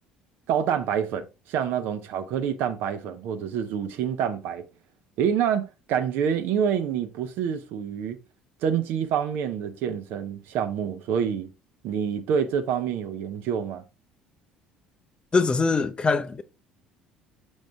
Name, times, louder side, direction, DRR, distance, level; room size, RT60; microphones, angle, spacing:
voice 1, 0.5-4.7 5.2-8.2 8.6-11.5 11.8-13.8, right 8 dB, 55° right, 0.9 m, -27 dB
voice 2, 15.3-16.4, left 4 dB, 25° left, 0.6 m, -23 dB
6.5 x 6.3 x 3.4 m
figure-of-eight pair, 60°, 4 cm